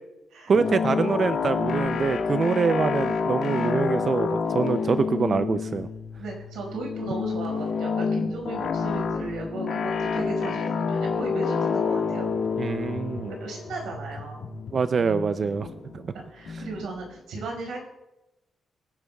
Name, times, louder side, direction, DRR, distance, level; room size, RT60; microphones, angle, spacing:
sound 1, 0.5-17.1, left 5 dB, 65° left, 1.5 m, -28 dB
voice 1, 0.5-5.9 12.6-13.3 14.7-15.7 15.9-16.0, right 5 dB, 35° right, 11 dB, 0.3 m, -25 dB
voice 2, 6.2-12.3 13.3-14.5 16.1-17.8, right 3 dB, 85° right, 1 dB, 4.9 m, -36 dB
24.5 x 11.0 x 2.3 m, 0.97 s
wide cardioid pair, 170°, 0 cm